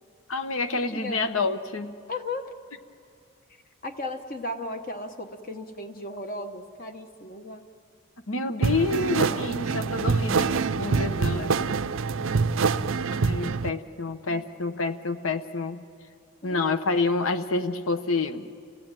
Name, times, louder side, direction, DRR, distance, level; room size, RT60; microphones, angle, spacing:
voice 1, 0.3-1.9 8.3-11.7 13.1-15.8 16.4-18.4, left 3 dB, 75° left, 9 dB, 1.1 m, -28 dB
voice 2, 0.9-1.2 2.1-2.5 3.8-7.7 12.2-12.5 13.0-13.1 14.3-14.4 16.4-16.6, left 2 dB, 40° left, 5 dB, 1.1 m, -36 dB
sound 1, 8.6-13.7, right 4 dB, 70° right, 0.5 m, -25 dB
29.5 x 16.5 x 9.0 m, 2.4 s
head